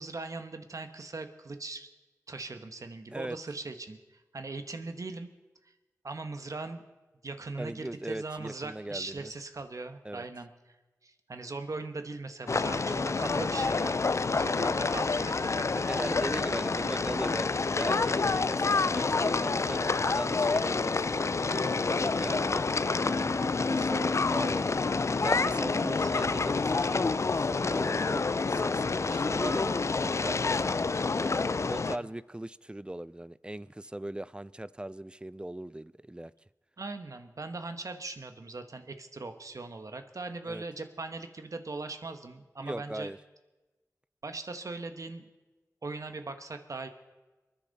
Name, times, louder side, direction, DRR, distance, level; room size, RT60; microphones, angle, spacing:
voice 1, 0.0-1.9 2.3-5.3 5.6-5.7 6.0-6.8 7.2-10.5 11.0-14.0 14.3-15.8 23.6-23.8 25.7-26.1 36.8-43.1 44.2-45.2 45.8-46.9, right 3 dB, 65° right, 8 dB, 1.2 m, -40 dB
voice 2, 7.6-9.3 10.0-10.3 15.7-22.6 23.0-31.3 31.7-36.3 40.5-40.6 42.6-43.2, right 1 dB, 15° right, 18 dB, 0.4 m, -39 dB
sound 1, 12.5-32.0, left 4 dB, 50° left, 0.4 m, -28 dB
28.0 x 10.0 x 4.1 m, 1.2 s
wide cardioid pair, 60°, 6 cm